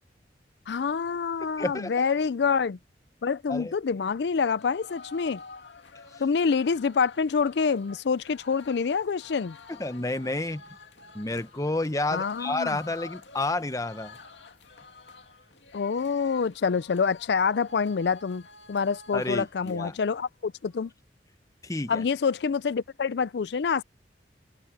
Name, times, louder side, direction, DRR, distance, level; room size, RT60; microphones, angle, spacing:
voice 1, 0.7-2.8 3.2-5.4 6.2-9.6 12.1-12.8 15.7-18.4 18.7-20.9 21.9-23.8, left 5 dB, 70° left, 0.4 m, -26 dB
voice 2, 1.6-1.9 3.5-3.7 9.8-10.6 11.1-14.2 19.1-20.0 21.6-22.0, left 2 dB, 20° left, 0.8 m, -30 dB
sound 1, 4.6-19.8 20.1-20.2 20.5-20.9, left 4 dB, 90° left, 2.4 m, -49 dB
open air
head